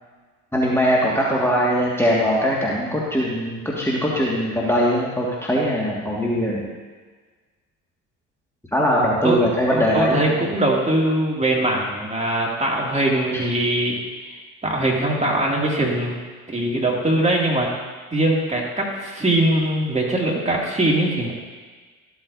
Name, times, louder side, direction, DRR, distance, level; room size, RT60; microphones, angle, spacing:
voice 1, 0.5-6.7 8.7-10.3 13.3-13.4, equal, 5° left, -5 dB, 1.9 m, -21 dB
voice 2, 9.2-14.0 14.6-16.2 16.5-17.7 18.1-21.3, right 1 dB, 15° right, -2 dB, 2.4 m, -21 dB
14.0 x 8.0 x 2.7 m, 1.4 s
hypercardioid pair, 55°, 40 cm